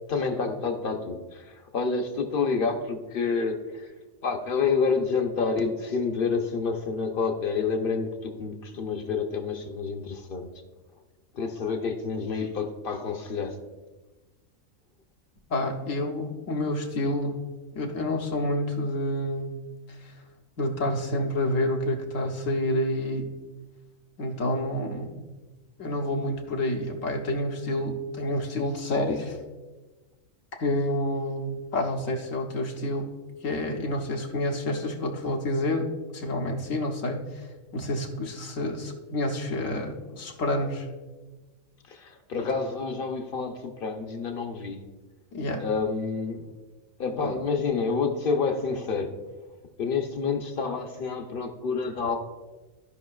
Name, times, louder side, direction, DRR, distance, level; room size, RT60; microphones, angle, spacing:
voice 1, 0.1-3.9 4.2-10.5 11.3-13.6 41.9-44.8 45.6-46.5 47.0-49.1 49.8-52.2, left 5 dB, 50° left, 5 dB, 0.8 m, -28 dB
voice 2, 15.5-17.5 17.8-19.5 19.9-20.1 20.6-23.3 24.2-25.2 25.8-29.4 30.6-33.2 33.4-35.9 36.1-37.4 37.7-40.9 45.3-45.6 47.2-47.4, left 1 dB, 75° left, 2 dB, 1.3 m, -28 dB
14.5 x 5.3 x 2.3 m, 1.2 s
omnidirectional pair, 1.4 m